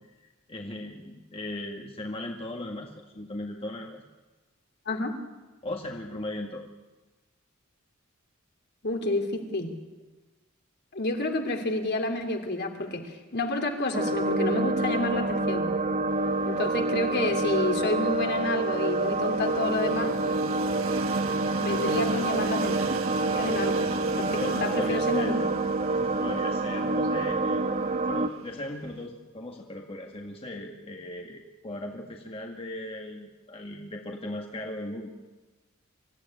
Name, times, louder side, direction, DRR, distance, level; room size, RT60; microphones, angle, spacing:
voice 1, 0.5-4.0 5.6-6.7 24.4-25.4 25.9-27.7 28.1-35.1, left 1 dB, 30° left, 1 dB, 1.8 m, -38 dB
voice 2, 8.8-9.7 10.9-15.7 16.4-20.2 21.6-22.8 23.3-25.5, left 2 dB, 55° left, 4 dB, 2.9 m, -29 dB
sound 1, 13.9-28.3, right 2 dB, 35° right, 1.2 m, -27 dB
Train, 16.1-29.1, right 3 dB, 75° right, 1.4 m, -39 dB
25.0 x 14.5 x 9.9 m, 1.2 s
head